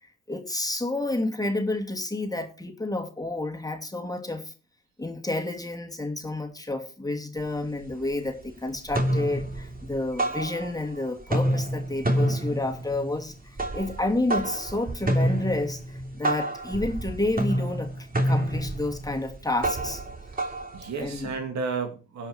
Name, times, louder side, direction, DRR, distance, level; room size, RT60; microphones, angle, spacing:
voice 1, 0.0-4.5 5.0-20.0 21.0-21.3, left 2 dB, 10° left, 2.7 m, -30 dB
sound 1, 7.4-7.5 7.8-8.5 8.8-11.0 11.2-21.4, right 1 dB, 30° right, 3.2 m, -28 dB
voice 2, 20.3-22.3, right 4 dB, 65° right, 2.4 m, -33 dB
16.5 x 5.7 x 4.5 m
hypercardioid pair, 50°, 30 cm